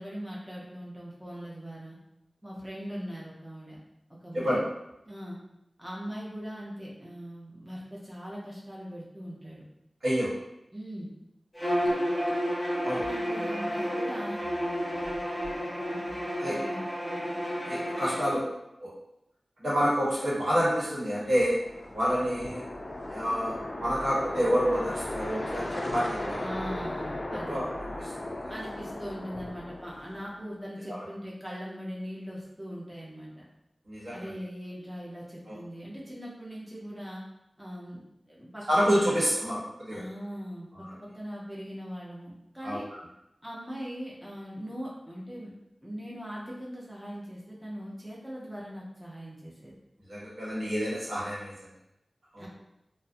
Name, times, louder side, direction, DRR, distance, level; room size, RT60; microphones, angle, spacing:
voice 1, 0.0-2.0 2.4-3.8 4.1-4.6 5.1-5.4 5.8-9.6 10.7-11.1 11.8-12.0 12.3-12.4 12.9-14.4 16.5-16.9 26.4-27.6 28.5-33.4 34.1-37.2 37.6-38.0 38.3-38.7 39.0-39.2 39.9-42.9 43.4-45.5 45.8-49.7 52.4-52.5, equal, 5° right, -6 dB, 0.6 m, -40 dB
voice 2, 10.0-10.3 12.8-13.0 16.4-16.6 17.7-18.4 18.8-18.9 19.6-21.6 21.9-22.7 23.1-26.6 27.3-27.6 28.2-28.3 30.9-31.0 33.9-34.3 35.5-35.6 38.7-40.0 40.7-40.9 42.6-43.0 50.1-51.5 52.3-52.5, equal, 75° right, -7 dB, 1.0 m, -28 dB
Bowed string instrument, 11.5-18.3, equal, 15° left, 0.9 m, -31 dB
sound 1, 21.4-30.4, left 1 dB, 45° left, 0.3 m, -36 dB
2.4 x 2.0 x 2.5 m, 0.86 s
wide cardioid pair, 85°, 0 cm